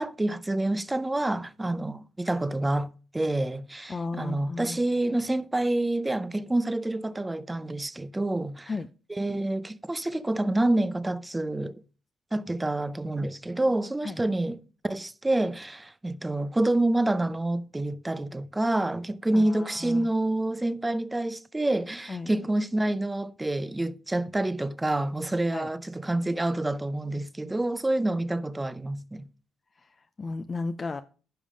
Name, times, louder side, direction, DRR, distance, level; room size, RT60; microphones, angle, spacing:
voice 1, 0.0-8.7 9.1-11.8 12.3-29.2, right 1 dB, 15° right, 0.6 m, -28 dB
voice 2, 3.9-4.8 8.7-8.9 14.0-14.2 19.3-20.1 22.1-22.3 25.5-25.7 29.8-31.0, left 3 dB, 35° left, 0.5 m, -34 dB
10.0 x 5.5 x 5.0 m
cardioid pair, 90°, 0 cm